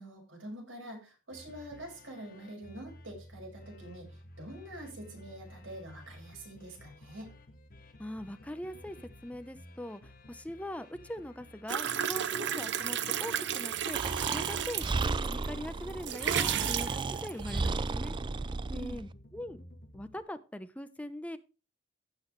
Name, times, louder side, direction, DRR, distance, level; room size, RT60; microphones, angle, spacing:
voice 1, 0.0-7.3 18.7-19.0, right 1 dB, 85° right, 0 dB, 5.8 m, -46 dB
sound 1, 1.3-20.2, left 1 dB, 50° left, 1.5 m, -53 dB
voice 2, 8.0-9.0 9.2-14.0 14.3-18.2 18.7-19.6 19.9-21.4, left 1 dB, 5° left, 10 dB, 0.8 m, -41 dB
sound 2, 11.7-15.5 15.9-17.7, right 9 dB, 65° right, 0.7 m, -33 dB
Breathing, 13.9-19.0, right 3 dB, 25° right, 0.4 m, -34 dB
16.0 x 6.3 x 3.2 m, 0.31 s
head